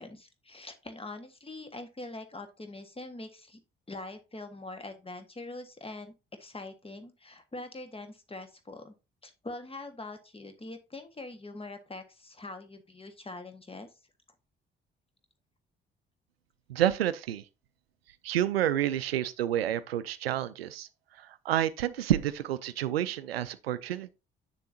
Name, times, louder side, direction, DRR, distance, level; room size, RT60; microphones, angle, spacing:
voice 1, 0.0-3.6 3.9-6.1 6.4-8.9 9.2-13.9, left 2 dB, 20° left, 1.5 m, -43 dB
voice 2, 16.7-17.4 18.2-20.9 21.2-24.1, right 11 dB, 85° right, 0.5 m, -29 dB
7.7 x 6.8 x 2.7 m
figure-of-eight pair, 45°, 29 cm